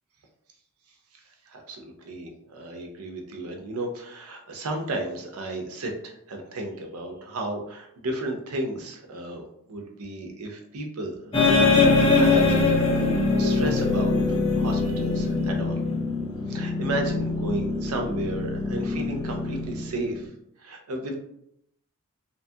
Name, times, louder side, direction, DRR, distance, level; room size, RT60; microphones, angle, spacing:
voice 1, 1.5-9.4 9.7-14.2 14.5-15.8 16.5-20.3 20.6-21.1, right 2 dB, 80° right, 2 dB, 0.6 m, -34 dB
sound 1, 11.3-20.2, left 3 dB, 25° left, 0.5 m, -23 dB
2.8 x 2.2 x 2.7 m, 0.74 s
head